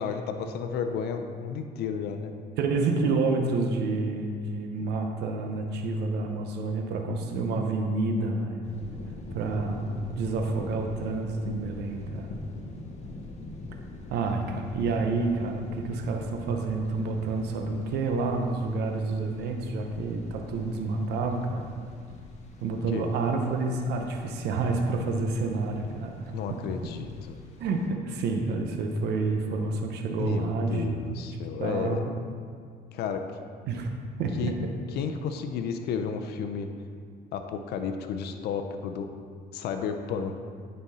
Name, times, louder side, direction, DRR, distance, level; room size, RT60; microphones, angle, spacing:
voice 1, 0.0-2.3 22.9-23.1 26.3-27.4 30.2-32.1 32.9-33.3 34.4-34.5 35.0-36.7 37.3-39.1 39.5-40.4, left 6 dB, 75° left, 6 dB, 0.6 m, -32 dB
voice 2, 2.6-8.6 9.3-12.3 14.1-21.7 22.6-26.6 27.6-31.2 31.6-32.1 33.7-33.9 34.2-34.5, right 3 dB, 80° right, 3 dB, 0.8 m, -29 dB
sound 1, 8.6-27.9, left 2 dB, 40° left, 1.0 m, -44 dB
9.6 x 4.3 x 4.2 m, 2.1 s
cardioid pair, 110°, 17 cm